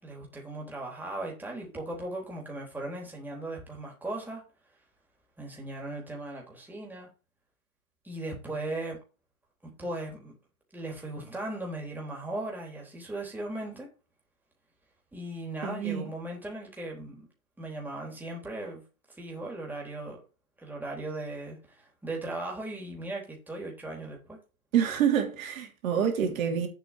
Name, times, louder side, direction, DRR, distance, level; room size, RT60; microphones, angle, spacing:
voice 1, 0.0-4.4 5.4-7.1 8.0-9.0 9.6-10.3 10.7-13.9 15.1-17.3 17.6-18.8 19.2-20.2 20.6-24.4 26.2-26.7, right 2 dB, 5° right, 3.7 m, -38 dB
voice 2, 15.6-16.1 24.7-26.7, right 8 dB, 65° right, 3.2 m, -27 dB
8.1 x 5.4 x 7.4 m
hypercardioid pair, 125°, 43 cm